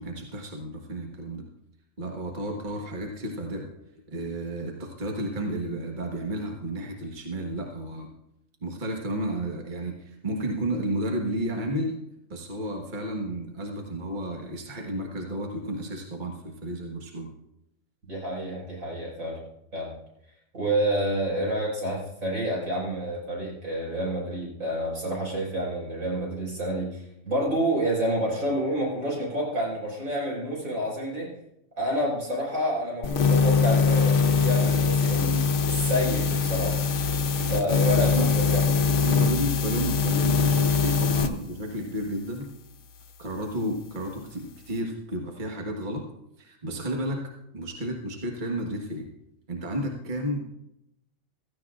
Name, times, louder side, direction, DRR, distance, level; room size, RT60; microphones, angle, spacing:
voice 1, 0.0-1.4 2.0-3.7 4.1-8.1 8.6-12.0 12.3-17.3 37.9-38.3 39.0-42.5 43.2-46.0 46.4-47.2 47.5-49.1 49.5-50.4, right 1 dB, 35° right, 1 dB, 1.5 m, -32 dB
voice 2, 18.1-19.4 19.7-19.9 20.5-31.3 31.8-36.8 37.3-38.9, right 1 dB, 80° right, -4 dB, 5.7 m, -29 dB
sound 1, 33.0-41.3, left 5 dB, 65° left, 1.1 m, -22 dB
16.5 x 14.0 x 2.4 m, 0.83 s
omnidirectional pair, 1.4 m